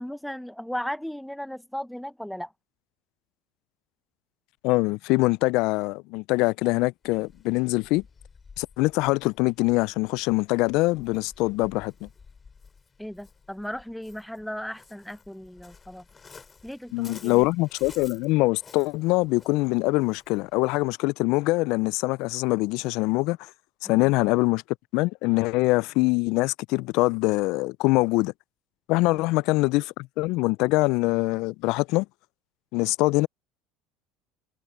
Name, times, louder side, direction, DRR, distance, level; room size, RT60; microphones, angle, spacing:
voice 1, 0.0-2.5 13.0-16.0 16.6-17.4 29.1-29.4, equal, ahead, 0.9 m, -36 dB
voice 2, 4.6-8.0 8.6-12.1 16.9-23.5 23.8-24.6 24.9-28.3 28.9-32.1 32.7-33.3, left 23 dB, 65° left, 0.4 m, -24 dB
Waves surf, 7.0-20.9, left 5 dB, 25° left, 4.8 m, -53 dB
hypercardioid pair, 80°, 0 cm